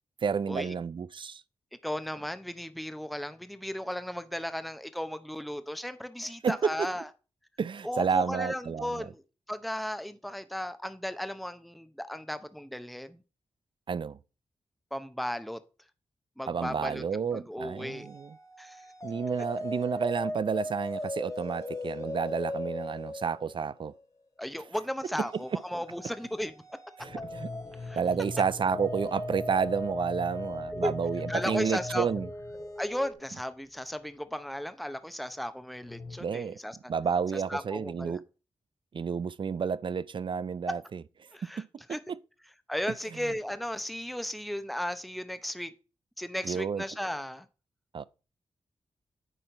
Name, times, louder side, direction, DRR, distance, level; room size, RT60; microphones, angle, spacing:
voice 1, 0.2-1.4 6.4-6.9 7.6-9.1 13.9-14.2 16.5-18.3 19.0-23.9 27.0-27.5 27.9-32.3 36.2-36.6 36.9-38.2 38.9-41.0 41.6-41.7 42.1-42.2 46.4-46.8 47.9-48.0, right 6 dB, 50° right, 0.4 m, -30 dB
voice 2, 1.8-7.1 7.8-9.2 9.5-13.2 14.9-15.6 16.4-17.0 17.3-18.1 18.6-18.9 24.4-26.5 27.0-27.1 27.8-28.0 30.7-30.9 31.3-32.1 32.8-36.8 37.3-38.2 40.7-40.8 41.3-41.6 41.9-42.0 42.7-45.7 46.2-47.5, equal, ahead, 0.8 m, -35 dB
sound 1, 17.8-24.0 25.2-33.1, left 1 dB, 30° left, 1.5 m, -39 dB
sound 2, 27.0-33.5 35.8-36.2, left 3 dB, 55° left, 1.1 m, -43 dB
9.1 x 4.4 x 4.3 m
cardioid pair, 45°, 11 cm